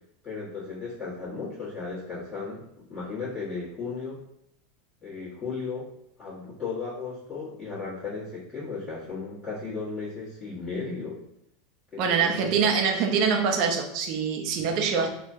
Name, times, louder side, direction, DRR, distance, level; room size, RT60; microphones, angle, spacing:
voice 1, 0.2-2.6 2.9-4.2 5.0-5.9 6.2-11.2 11.9-12.7, left 4 dB, 25° left, -12 dB, 1.3 m, -35 dB
voice 2, 12.0-15.1, right 6 dB, 50° right, 3 dB, 0.6 m, -24 dB
3.7 x 2.2 x 2.7 m, 0.78 s
figure-of-eight pair, 85°, 0 cm